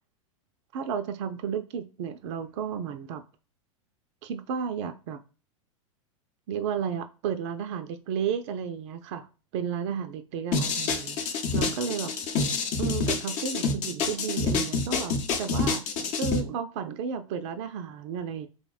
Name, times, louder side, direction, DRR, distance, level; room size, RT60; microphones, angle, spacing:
voice 1, 0.7-3.2 4.2-5.2 6.5-9.3 9.5-11.2 11.5-12.1 12.8-18.5, right 7 dB, 60° right, 0.4 m, -33 dB
sound 1, 10.5-16.4, left 4 dB, 45° left, 0.7 m, -27 dB
3.3 x 2.1 x 2.3 m
hypercardioid pair, 100°, 17 cm